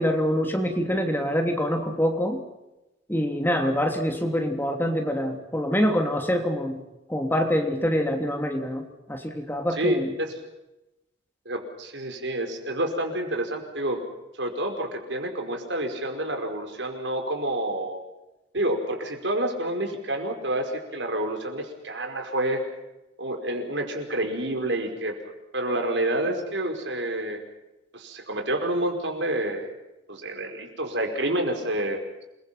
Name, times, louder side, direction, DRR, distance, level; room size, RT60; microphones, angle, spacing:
voice 1, 0.0-2.4 3.1-6.8 7.1-10.1, equal, 10° left, 4 dB, 3.2 m, -25 dB
voice 2, 9.7-10.3 11.5-14.0 14.4-18.0 18.5-22.6 23.2-25.2 25.5-27.4 27.9-29.7 30.1-32.0, right 1 dB, 70° right, 4 dB, 5.1 m, -28 dB
28.5 x 22.5 x 5.9 m, 0.95 s
head